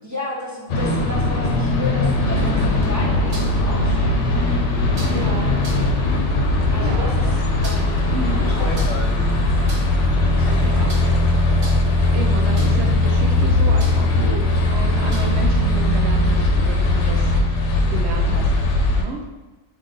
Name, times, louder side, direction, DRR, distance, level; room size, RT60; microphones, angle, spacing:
voice 1, 0.0-4.5 6.7-7.3 7.6-9.0 10.1-11.4, left 1 dB, 25° right, -4 dB, 0.4 m, -33 dB
sound 1, 0.7-19.0, left 2 dB, 85° left, 0.9 m, -19 dB
sound 2, 2.0-15.9, equal, 35° left, 0.8 m, -32 dB
sound 3, 2.7-3.6 4.9-5.2 5.6-5.9 7.4-8.0 8.7-9.1 9.5-10.0 10.9-11.2 11.5-12.0 12.5-12.9 13.8-14.1 15.1-15.5, right 2 dB, 85° right, 1.3 m, -38 dB
voice 2, 5.1-5.6 6.8-7.3 8.1-8.5 10.6-10.9 12.1-17.3 17.9-18.5 19.0-19.2, right 4 dB, 70° right, 3 dB, 0.8 m, -31 dB
3.9 x 2.7 x 3.6 m, 1.2 s
omnidirectional pair, 1.2 m